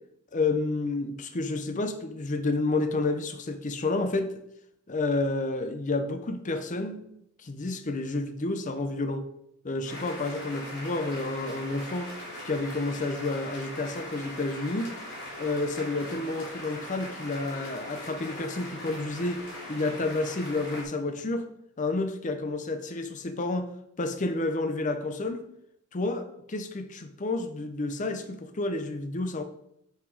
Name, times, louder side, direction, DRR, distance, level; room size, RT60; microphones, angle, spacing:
voice 1, 0.3-4.4 4.9-7.1 7.4-9.3 9.6-12.1 12.4-14.9 15.4-19.4 19.7-21.5 21.8-23.6 24.0-25.4 25.9-29.4, left 2 dB, 35° left, 7 dB, 0.6 m, -30 dB
sound 1, 9.8-20.8, left 1 dB, 60° left, 2.7 m, -40 dB
6.1 x 5.8 x 4.7 m, 0.77 s
head